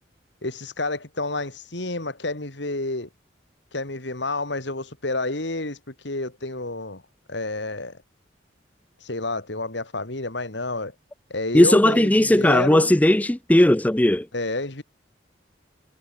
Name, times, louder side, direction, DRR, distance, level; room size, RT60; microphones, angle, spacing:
voice 1, 0.4-3.1 3.7-7.0 7.3-8.0 9.0-10.9 11.3-13.0 14.3-14.8, left 2 dB, 65° left, 2.7 m, -29 dB
voice 2, 11.5-14.3, left 1 dB, 10° left, 0.4 m, -17 dB
head